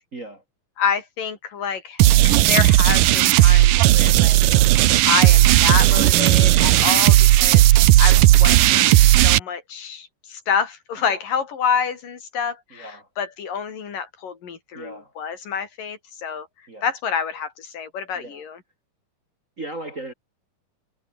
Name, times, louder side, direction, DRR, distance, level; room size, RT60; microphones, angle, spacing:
voice 1, 0.1-0.4 4.4-4.7 8.0-8.3 11.1-11.2 12.7-13.1 14.7-15.1 16.7-16.9 18.2-18.4 19.6-20.1, right 2 dB, 30° right, 1.8 m, -37 dB
voice 2, 0.8-4.4 5.1-7.7 8.0-16.5 16.8-18.6, left 7 dB, 70° left, 4.9 m, -27 dB
sound 1, 2.0-9.4, right 15 dB, 75° right, 2.4 m, -14 dB
omnidirectional pair, 4.0 m